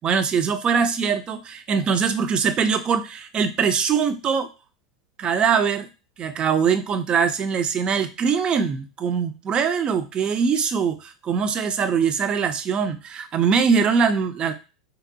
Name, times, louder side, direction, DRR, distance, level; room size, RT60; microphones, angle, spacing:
voice 1, 0.0-4.5 5.2-5.9 6.2-14.5, right 6 dB, 30° right, 9 dB, 0.4 m, -22 dB
2.7 x 2.1 x 2.5 m, 0.32 s
hypercardioid pair, 90°, 3 cm